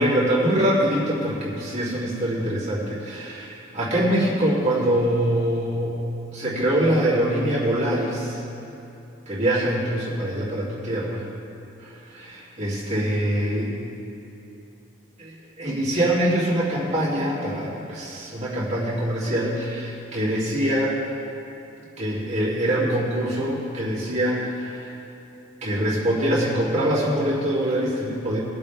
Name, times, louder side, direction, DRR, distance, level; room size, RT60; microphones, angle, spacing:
voice 1, 0.0-6.0 6.3-8.4 9.3-11.2 12.3-13.7 15.2-21.0 22.0-24.9 25.6-28.4, right 1 dB, 30° right, -8 dB, 3.1 m, -24 dB
21.0 x 7.9 x 3.7 m, 2.9 s
head